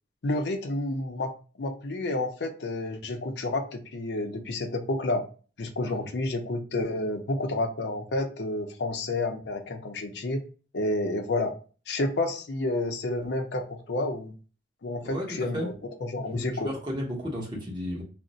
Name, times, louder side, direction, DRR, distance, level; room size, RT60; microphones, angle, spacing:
voice 1, 0.2-1.3 1.6-5.2 5.6-10.4 10.7-11.5 11.9-14.3 14.8-15.7 16.0-16.7, left 2 dB, 70° left, 4 dB, 0.5 m, -30 dB
voice 2, 15.0-15.7 16.3-18.0, equal, 25° right, -3 dB, 0.9 m, -34 dB
2.5 x 2.0 x 3.8 m, 0.36 s
head